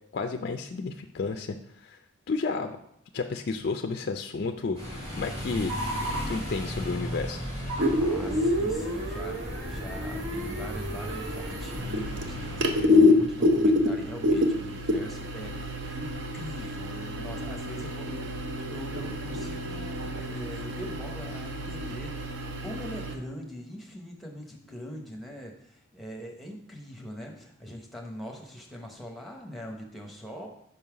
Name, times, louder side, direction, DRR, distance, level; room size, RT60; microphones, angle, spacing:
voice 1, 0.1-1.6 1.8-2.0 2.3-2.8 3.1-5.7 6.3-7.4, left 4 dB, 50° left, 6 dB, 0.3 m, -31 dB
sound 1, 4.7-12.8, equal, 30° right, 2.6 m, -36 dB
sound 2, 7.8-23.2, left 2 dB, 55° right, 0.7 m, -28 dB
voice 2, 7.9-16.1 16.3-30.5, equal, ahead, 0 dB, 0.9 m, -42 dB
5.5 x 5.4 x 4.7 m, 0.74 s
head